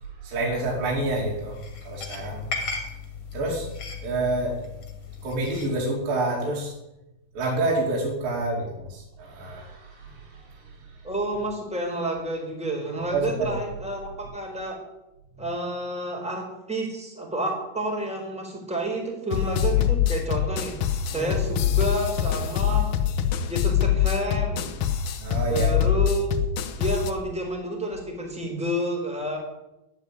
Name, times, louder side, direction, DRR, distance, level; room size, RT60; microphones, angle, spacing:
voice 1, 0.0-1.6 1.8-2.5 3.3-3.7 4.0-4.6 5.2-6.8 7.3-11.0 13.1-13.5 15.4-15.5 21.1-21.4 25.2-25.9, right 2 dB, 60° right, -4 dB, 4.2 m, -28 dB
sound 1, 0.6-5.8, left 4 dB, 40° left, 3.4 m, -37 dB
voice 2, 11.0-14.8 15.4-22.9 23.5-24.8 25.5-26.3 26.8-29.4, right 1 dB, ahead, 1 dB, 3.6 m, -30 dB
sound 2, 19.3-27.1, left 10 dB, 70° left, 2.5 m, -24 dB
13.0 x 9.9 x 9.6 m, 0.94 s
omnidirectional pair, 4.6 m